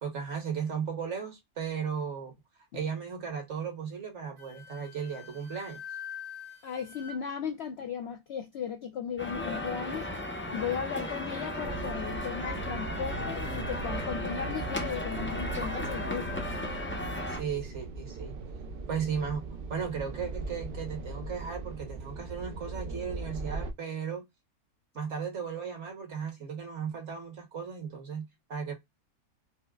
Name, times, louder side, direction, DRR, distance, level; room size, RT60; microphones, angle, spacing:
voice 1, 0.0-2.3 2.7-5.8 17.3-18.3 18.9-24.2 24.9-28.7, right 6 dB, 55° right, 1.3 m, -36 dB
Wind instrument woodwind instrument, 4.4-7.2, left 8 dB, 85° right, 2.1 m, -45 dB
voice 2, 6.6-10.1 10.5-16.6, left 7 dB, 70° left, 0.6 m, -36 dB
sound 1, 9.2-17.4, left 1 dB, 15° left, 0.4 m, -35 dB
sound 2, 11.6-23.7, right 3 dB, 70° right, 0.5 m, -39 dB
4.7 x 2.1 x 2.2 m
omnidirectional pair, 1.5 m